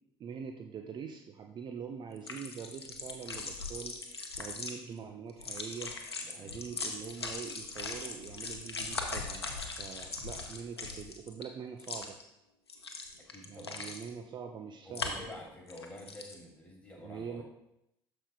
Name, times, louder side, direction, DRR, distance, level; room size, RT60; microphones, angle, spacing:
voice 1, 0.2-4.0 4.4-5.9 6.4-9.5 9.8-12.2 13.5-15.2 17.0-17.4, right 6 dB, 35° right, 5 dB, 0.6 m, -43 dB
sound 1, 2.2-4.7 5.3-11.4 11.8-12.2 12.7-14.1 15.0-15.3 15.7-16.3, left 4 dB, 85° left, 0.7 m, -40 dB
voice 2, 6.2-6.6 10.1-10.4 13.1-13.9 14.8-17.4, left 1 dB, 10° left, -2 dB, 2.6 m, -49 dB
12.5 x 5.0 x 2.3 m, 0.84 s
figure-of-eight pair, 60°, 13 cm